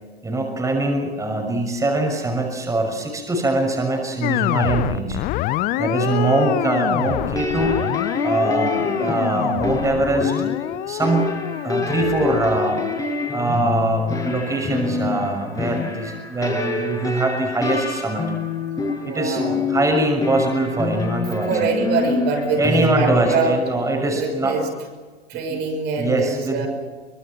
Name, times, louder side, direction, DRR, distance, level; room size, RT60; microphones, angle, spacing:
voice 1, 0.2-5.2 5.8-7.8 8.2-10.5 10.9-11.3 11.6-12.8 13.3-18.3 19.0-19.4 19.7-21.7 22.6-24.6 25.5-25.6 26.0-26.7, right 2 dB, 10° right, 3 dB, 6.2 m, -22 dB
sound 1, 4.2-13.5, left 16 dB, 25° left, 0.7 m, -27 dB
voice 2, 5.7-6.4 19.0-19.7 21.5-23.7 24.1-24.7 25.3-26.7, right 4 dB, 35° right, 3 dB, 6.5 m, -24 dB
sound 2, 7.0-23.4, left 3 dB, 10° left, 6.3 m, -26 dB
26.5 x 25.5 x 6.0 m, 1.4 s
figure-of-eight pair, 95°, 31 cm